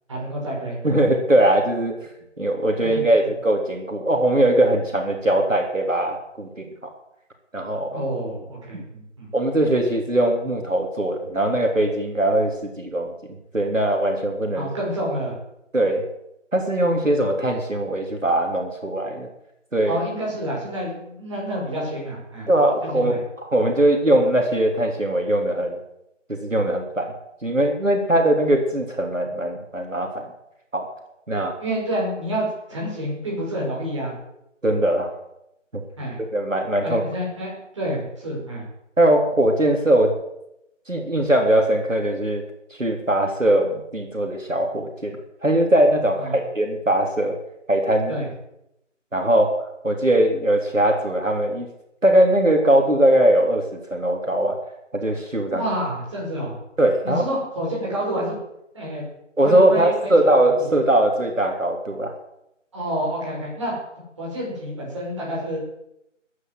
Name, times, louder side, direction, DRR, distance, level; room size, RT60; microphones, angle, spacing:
voice 1, 0.1-0.8 2.9-3.0 7.9-9.3 14.5-15.4 19.8-22.5 22.8-23.2 31.6-34.1 36.0-36.2 36.8-38.7 46.2-46.4 48.1-48.3 55.5-56.6 57.0-58.4 58.7-59.0 59.4-60.1 60.4-60.7 62.7-63.7 64.2-65.6, equal, 25° right, -4 dB, 5.7 m, -28 dB
voice 2, 0.8-1.9 2.4-6.7 7.5-8.0 8.7-8.8 9.3-13.1 13.5-14.7 15.7-16.0 16.5-19.3 19.7-20.0 22.5-23.1 23.4-25.8 26.3-27.1 27.4-30.2 30.7-30.9 31.3-31.5 34.6-35.1 35.7-35.8 36.2-37.0 39.0-40.1 40.9-42.4 42.8-45.1 45.4-47.4 47.7-48.1 49.1-49.5 49.8-51.7 52.0-54.6 54.9-55.6 56.8-57.2 59.4-62.1, right 1 dB, 85° right, 3 dB, 3.5 m, -20 dB
14.5 x 10.0 x 7.8 m, 0.82 s
figure-of-eight pair, 165°, 37 cm